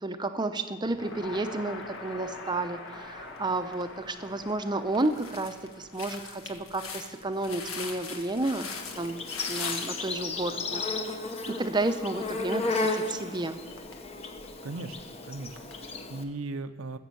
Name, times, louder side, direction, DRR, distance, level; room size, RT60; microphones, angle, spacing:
voice 1, 0.0-8.7 9.0-9.2 9.5-10.8 11.5-13.6, right 2 dB, 20° right, 8 dB, 0.7 m, -31 dB
Crackle, 0.8-16.3, left 2 dB, 60° left, 1.7 m, -48 dB
sound 1, 3.4-3.9 4.4-4.5 4.9-10.2, left 5 dB, 75° left, 1.6 m, -40 dB
Insect, 8.6-16.2, left 3 dB, 30° left, 0.9 m, -34 dB
voice 2, 14.6-15.0 15.2-17.0, right 2 dB, 70° right, 9 dB, 0.7 m, -38 dB
15.0 x 7.4 x 7.7 m, 1.4 s
head